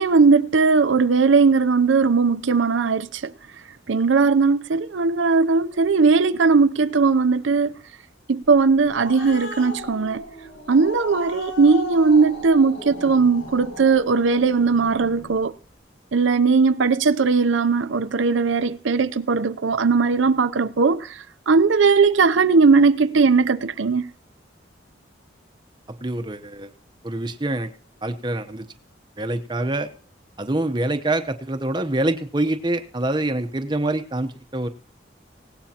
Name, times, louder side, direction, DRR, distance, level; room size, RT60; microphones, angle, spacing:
voice 1, 0.0-3.3 3.9-7.7 8.3-10.2 10.7-15.5 16.1-21.1 21.5-24.1, right 4 dB, 80° right, 0.6 m, -18 dB
Growling, 8.6-15.4, left 2 dB, 80° left, 6.7 m, -37 dB
voice 2, 26.0-26.7 27.0-27.7 28.0-28.7 29.2-29.9 30.4-34.7, right 2 dB, 25° right, 0.8 m, -25 dB
19.0 x 17.0 x 2.9 m
head